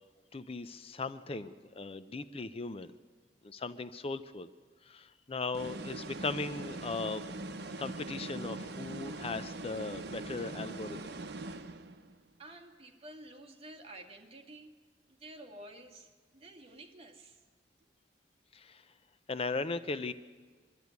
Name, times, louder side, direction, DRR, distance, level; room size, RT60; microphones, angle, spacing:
voice 1, 0.3-2.9 3.4-4.5 4.8-7.2 7.8-11.1 18.5-18.8 19.3-20.1, left 3 dB, 35° left, 12 dB, 0.5 m, -38 dB
sound 1, 5.5-12.2, right 2 dB, 65° right, 1.0 m, -42 dB
voice 2, 12.4-14.7 15.1-17.4, right 1 dB, 35° right, 2 dB, 2.1 m, -51 dB
23.5 x 12.0 x 9.5 m, 1.4 s
head